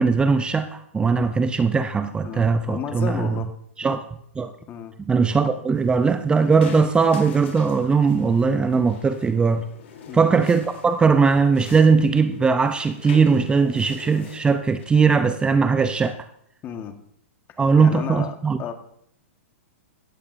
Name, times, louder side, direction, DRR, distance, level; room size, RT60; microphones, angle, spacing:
voice 1, 0.0-3.3 3.8-4.0 4.4-4.5 5.1-9.6 10.1-16.2 17.6-18.6, right 5 dB, 15° right, 10 dB, 0.6 m, -19 dB
voice 2, 2.2-3.5 3.8-4.0 4.7-4.9 10.1-10.3 16.6-16.9 17.8-18.7, left 8 dB, 30° left, 7 dB, 1.5 m, -33 dB
sound 1, 5.7-14.8, left 6 dB, 60° left, 3.4 m, -44 dB
16.0 x 14.5 x 2.7 m, 0.69 s
hypercardioid pair, 110°, 7 cm